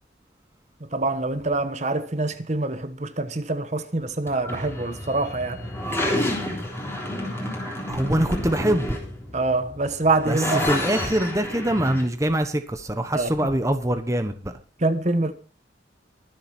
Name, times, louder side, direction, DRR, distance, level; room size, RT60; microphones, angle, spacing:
voice 1, 0.8-5.7 9.3-10.7 13.1-13.3 14.8-15.3, right 2 dB, 35° right, 1.1 m, -25 dB
sound 1, 4.3-12.0, left 1 dB, 15° left, 3.5 m, -30 dB
voice 2, 7.9-9.0 10.3-14.5, right 1 dB, 15° right, 1.0 m, -24 dB
23.0 x 7.8 x 4.4 m
head